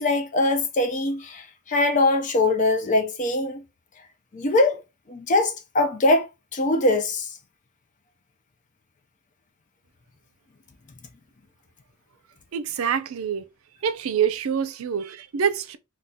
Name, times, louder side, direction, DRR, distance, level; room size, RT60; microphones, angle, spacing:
voice 1, 0.0-3.6 4.3-4.8 5.1-6.3 6.5-7.3, left 2 dB, 35° left, 0.4 m, -22 dB
voice 2, 12.5-13.4 13.8-15.8, right 7 dB, 85° right, 0.4 m, -26 dB
3.5 x 2.3 x 2.6 m
head